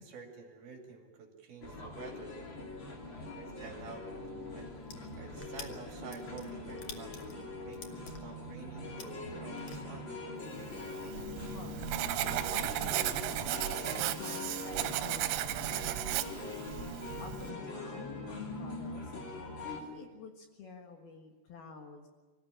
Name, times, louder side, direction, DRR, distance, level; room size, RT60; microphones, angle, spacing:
voice 1, 0.0-2.3 3.3-4.1 4.5-10.1, right 5 dB, 55° right, 2 dB, 4.0 m, -50 dB
sound 1, 1.6-19.8, left 2 dB, 30° left, 2.7 m, -42 dB
voice 2, 3.1-3.4 11.5-11.8 12.2-15.8 17.2-19.1 19.6-22.1, left 5 dB, 60° left, 3 dB, 3.0 m, -49 dB
sound 2, 4.8-9.8, left 5 dB, 90° left, 1.3 m, -48 dB
Writing, 10.8-17.5, right 14 dB, 85° right, 3.4 m, -35 dB
25.0 x 15.5 x 9.9 m, 1.3 s
omnidirectional pair, 5.7 m